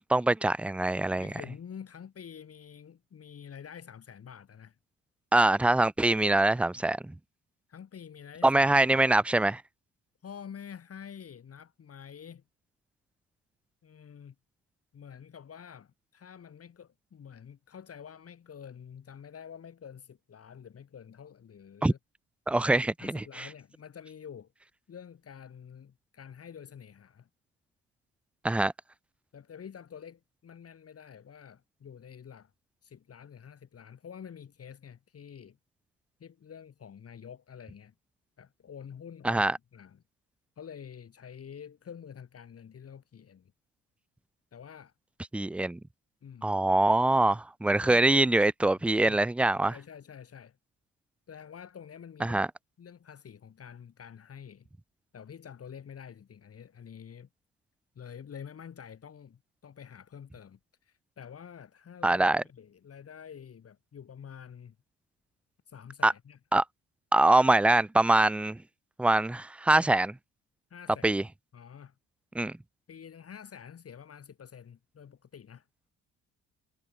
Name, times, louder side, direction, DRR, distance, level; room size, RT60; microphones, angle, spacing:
voice 1, 0.1-1.3 5.3-7.1 8.4-9.6 21.8-21.9 22.5-23.5 28.4-28.7 39.2-39.6 45.3-45.8 46.4-49.7 52.2-52.5 62.0-62.4 66.0-66.1 66.5-66.6 67.1-68.6 69.0-70.2 71.0-71.2 72.3-72.6, right 2 dB, 5° right, 0.3 m, -24 dB
voice 2, 1.2-4.8 7.7-9.0 10.2-12.4 13.8-14.3 14.9-22.0 23.0-24.5 24.9-27.3 29.3-32.5 32.8-35.6 36.2-37.9 38.4-40.0 40.6-43.5 44.5-44.9 46.2-46.6 47.8-48.0 48.7-49.2 49.7-50.6 51.3-52.5 52.8-54.7 55.1-57.3 57.9-64.7 65.7-66.4 70.7-71.1 71.5-71.9 72.9-75.7, left 7 dB, 50° left, 5.1 m, -48 dB
cardioid pair, 90°, 30 cm